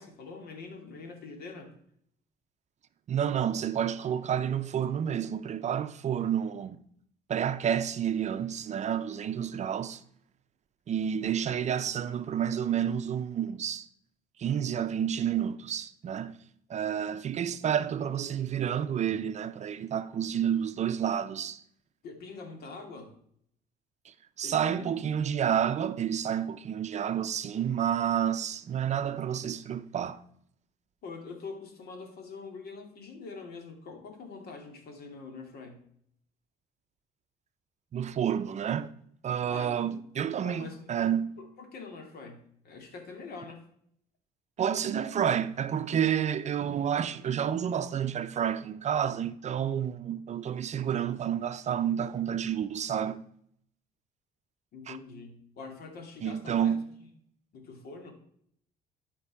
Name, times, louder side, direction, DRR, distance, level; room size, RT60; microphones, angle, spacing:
voice 1, 0.0-1.7 22.0-23.1 24.4-24.9 31.0-35.8 39.5-40.0 40.4-40.8 41.4-43.6 54.7-56.8 57.5-58.1, left 4 dB, 65° left, 2.6 m, -44 dB
voice 2, 3.1-6.8 7.3-10.0 10.9-13.9 14.4-16.4 16.7-21.6 24.1-30.2 37.9-38.9 39.2-41.4 44.6-53.2 54.9-55.0 56.2-56.9, right 9 dB, 45° right, 0.6 m, -30 dB
13.0 x 5.3 x 4.8 m
cardioid pair, 110°, 17 cm